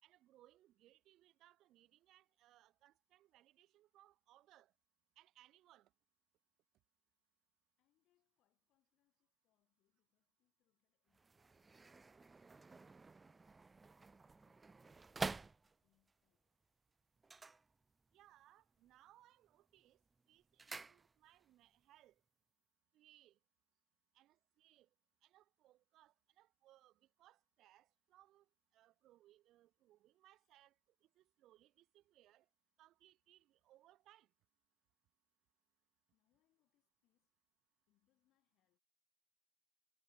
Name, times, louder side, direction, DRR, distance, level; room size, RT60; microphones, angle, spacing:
voice 1, 0.0-4.7 5.1-5.9 18.1-22.2 22.9-23.4 24.1-24.9 25.2-32.5 32.8-34.3, right 14 dB, 75° right, 1.4 m, -69 dB
voice 2, 7.8-13.7 14.1-16.6 30.3-30.6 36.1-37.4 37.9-38.8, left 15 dB, 80° left, 5.4 m, -87 dB
sound 1, 11.1-16.1 17.2-18.3 18.6-19.1 19.5-21.5 21.8-21.9, right 3 dB, 20° right, 0.3 m, -49 dB
cardioid pair, 115°, 0 cm